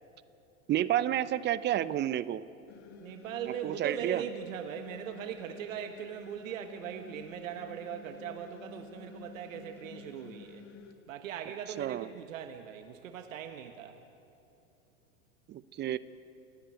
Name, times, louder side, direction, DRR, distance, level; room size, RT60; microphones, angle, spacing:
voice 1, 0.7-2.4 3.6-4.2 11.8-12.1 15.5-16.0, right 12 dB, 25° right, 15 dB, 0.7 m, -30 dB
sound 1, 2.7-10.9, left 6 dB, 40° left, 1.7 m, -51 dB
voice 2, 3.0-10.7 11.1-14.0, right 9 dB, 70° right, 6 dB, 1.4 m, -40 dB
29.0 x 10.0 x 9.1 m, 2.8 s
hypercardioid pair, 95°, 41 cm